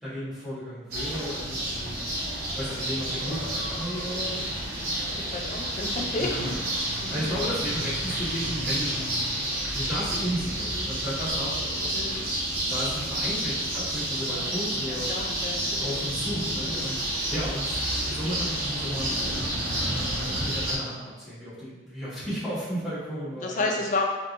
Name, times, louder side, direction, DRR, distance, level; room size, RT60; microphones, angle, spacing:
voice 1, 0.0-2.2 2.6-4.5 6.2-6.5 7.1-9.2 9.7-12.1 12.7-15.1 15.8-17.0 17.3-19.1 20.2-23.7, equal, ahead, -14 dB, 1.4 m, -34 dB
sound 1, 0.9-20.8, right 1 dB, 45° right, 0.8 m, -30 dB
voice 2, 4.8-6.5 7.0-7.3 10.7-10.9 11.9-12.3 14.9-15.9 16.6-16.9 23.4-24.0, left 3 dB, 40° left, 1 dB, 0.4 m, -32 dB
3.4 x 2.9 x 2.5 m, 1.2 s
head